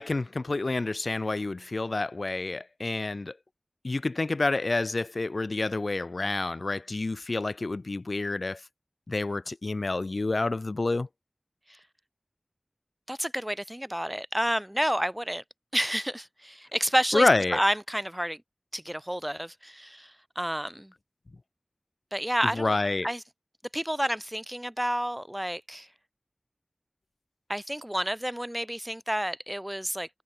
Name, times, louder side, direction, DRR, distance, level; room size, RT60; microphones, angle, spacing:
voice 1, 0.0-3.3 3.8-8.6 9.1-11.1 17.1-17.6 22.5-23.1, left 3 dB, 85° left, 0.9 m, -28 dB
voice 2, 13.1-15.4 15.7-18.4 18.7-20.9 22.1-22.7 23.0-23.2 23.7-25.9 27.5-30.1, equal, 10° right, 2.6 m, -30 dB
wide cardioid pair, 45°, 0 cm